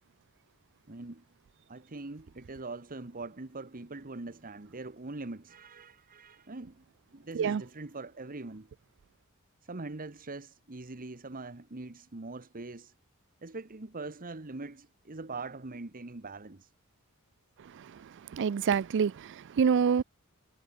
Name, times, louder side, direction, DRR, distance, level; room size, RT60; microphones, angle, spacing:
voice 1, 0.9-1.2 1.7-6.9 7.1-8.7 9.6-12.9 13.4-16.7, right 3 dB, 40° right, 1.3 m, -42 dB
voice 2, 18.3-20.0, right 6 dB, 55° right, 0.4 m, -26 dB
head